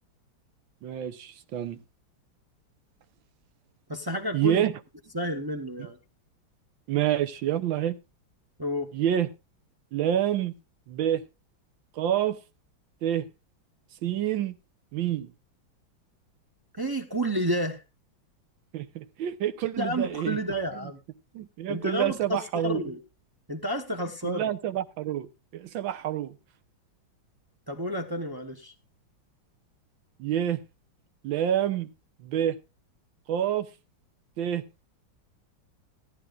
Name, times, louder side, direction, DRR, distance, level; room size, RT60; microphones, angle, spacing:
voice 1, 0.8-1.8 4.3-4.7 6.9-8.0 8.9-9.3 9.9-10.5 10.9-11.2 12.0-12.4 13.0-13.2 14.0-14.5 14.9-15.3 18.7-20.4 20.8-20.9 21.3-22.8 24.2-26.3 30.2-30.6 31.2-31.9 32.2-32.6 33.3-33.7 34.4-34.6, right 11 dB, 75° right, 1.6 m, -27 dB
voice 2, 3.9-4.7 5.1-6.0 8.6-8.9 16.7-17.8 19.8-21.0 21.7-23.0 23.5-24.5 27.7-28.7, equal, 30° right, 0.4 m, -30 dB
17.0 x 11.0 x 2.5 m
omnidirectional pair, 2.2 m